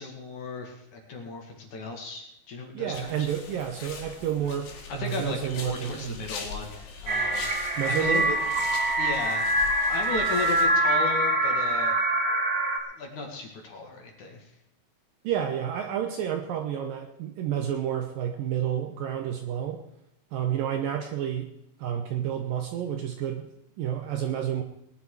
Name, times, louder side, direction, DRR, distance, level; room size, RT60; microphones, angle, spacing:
voice 1, 0.0-3.3 4.9-7.5 7.8-8.3 9.0-12.0 13.0-14.5, left 3 dB, 50° left, 2 dB, 3.2 m, -35 dB
voice 2, 2.7-6.2 7.8-8.3 15.2-19.8 20.3-21.5 21.8-23.5 23.8-24.6, right 9 dB, 70° right, 6 dB, 2.3 m, -30 dB
sound 1, 2.9-10.7, left 6 dB, 80° left, 4.4 m, -42 dB
sound 2, 7.1-12.8, right 1 dB, 45° right, 1.2 m, -25 dB
20.0 x 10.0 x 4.8 m, 0.81 s
omnidirectional pair, 4.9 m